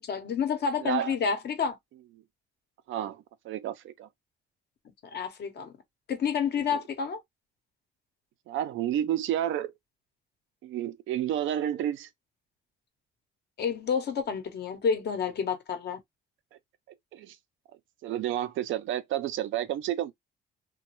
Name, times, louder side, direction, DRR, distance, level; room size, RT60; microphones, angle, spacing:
voice 1, 0.0-1.8 5.1-5.7 6.1-7.2 13.6-16.0, left 6 dB, 55° left, 0.9 m, -29 dB
voice 2, 0.8-1.1 2.9-4.1 6.7-6.8 8.5-9.7 10.6-12.1 17.1-17.4 18.0-20.1, right 11 dB, 80° right, 0.5 m, -30 dB
3.0 x 2.2 x 2.9 m
cardioid pair, 90°, 20 cm